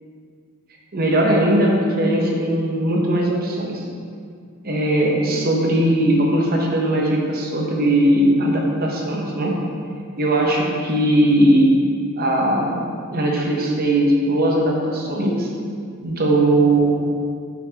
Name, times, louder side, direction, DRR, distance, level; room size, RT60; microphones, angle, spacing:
voice 1, 0.9-3.8 4.6-9.6 10.2-11.7 12.2-12.8 13.1-15.5 16.0-17.0, right 1 dB, 45° right, -1 dB, 0.8 m, -19 dB
5.9 x 5.8 x 2.8 m, 2.2 s
head